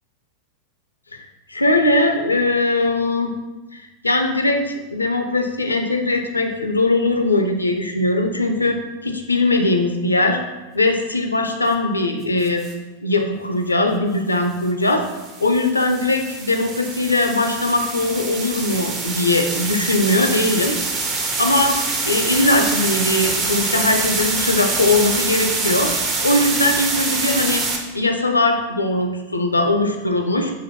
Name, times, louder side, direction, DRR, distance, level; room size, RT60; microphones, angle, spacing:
voice 1, 1.1-3.3 3.7-10.4 10.7-12.6 13.0-15.0 15.4-20.8 21.2-25.9 26.2-27.7 27.9-30.5, left 2 dB, 80° left, 4 dB, 0.4 m, -20 dB
sound 1, 12.4-12.7 14.9-27.8, right 3 dB, 30° right, 0.6 m, -25 dB
5.7 x 2.6 x 2.9 m, 1.2 s
figure-of-eight pair, 90°, 0 cm